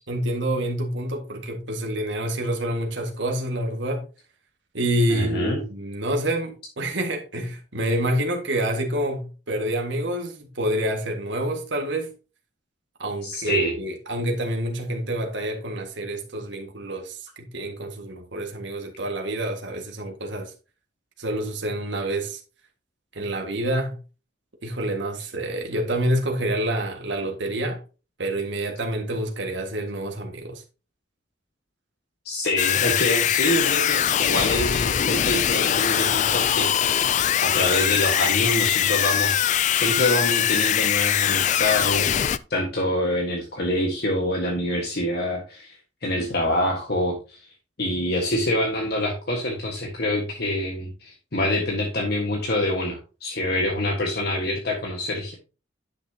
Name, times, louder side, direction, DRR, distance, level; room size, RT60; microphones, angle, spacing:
voice 1, 0.1-4.1 4.7-12.1 13.0-20.5 21.2-22.4 23.2-24.0 24.6-27.8 28.2-30.6, right 1 dB, 75° right, 1.8 m, -27 dB
voice 2, 5.1-5.6 13.2-13.7 32.2-36.7 37.4-39.3 39.7-47.4 47.8-55.3, left 1 dB, 60° left, 1.6 m, -26 dB
Deeply disturbed scream, 32.6-42.4, left 10 dB, 40° left, 0.3 m, -22 dB
10.5 x 6.6 x 2.8 m
head